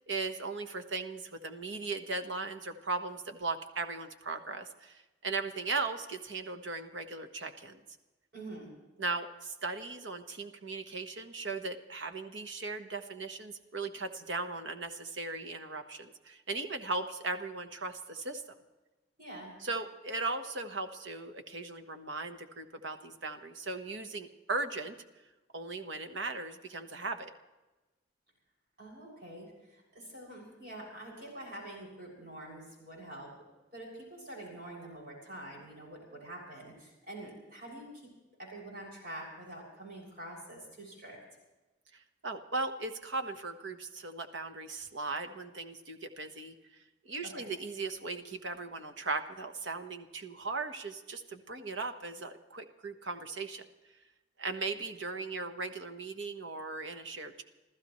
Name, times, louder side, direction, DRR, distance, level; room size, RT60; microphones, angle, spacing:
voice 1, 0.1-7.8 9.0-18.6 19.6-25.0 25.5-27.3 41.9-46.5 47.0-53.6 54.4-57.4, right 3 dB, 70° right, 8 dB, 1.3 m, -38 dB
voice 2, 8.3-8.7 19.2-19.6 28.8-33.3 33.7-38.1 38.4-41.2 47.2-47.5, right 1 dB, 50° right, -3 dB, 6.5 m, -46 dB
27.5 x 14.5 x 3.2 m, 1.1 s
head